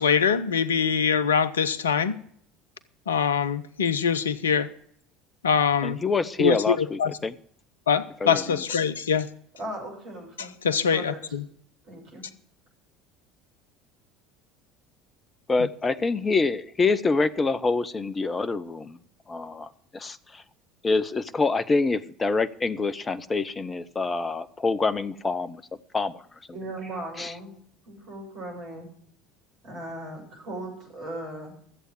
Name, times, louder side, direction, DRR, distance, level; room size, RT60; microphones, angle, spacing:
voice 1, 0.0-2.2 3.1-4.7 5.4-6.0 6.4-7.1 7.9-9.3 10.4-11.5, left 7 dB, 75° left, 0.7 m, -24 dB
voice 2, 5.8-7.3 8.2-8.6 15.5-19.0 19.3-20.4 20.8-25.6 25.9-26.2 27.2-27.3, left 3 dB, 20° left, 0.8 m, -26 dB
voice 3, 9.6-11.2 11.9-12.2 26.5-27.5 27.8-28.9 29.6-31.6, right 1 dB, 55° right, 6.8 m, -38 dB
14.0 x 8.1 x 7.7 m
figure-of-eight pair, 65°, 0 cm